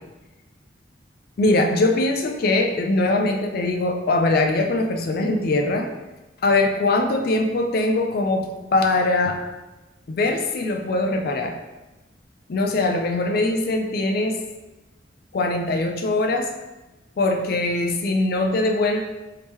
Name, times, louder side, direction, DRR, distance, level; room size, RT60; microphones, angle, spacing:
voice 1, 1.4-5.9 6.4-9.4 10.1-11.6 12.5-14.4 15.3-16.5 17.2-19.0, left 2 dB, 55° left, 4 dB, 0.4 m, -22 dB
3.5 x 2.8 x 3.0 m, 1.1 s
head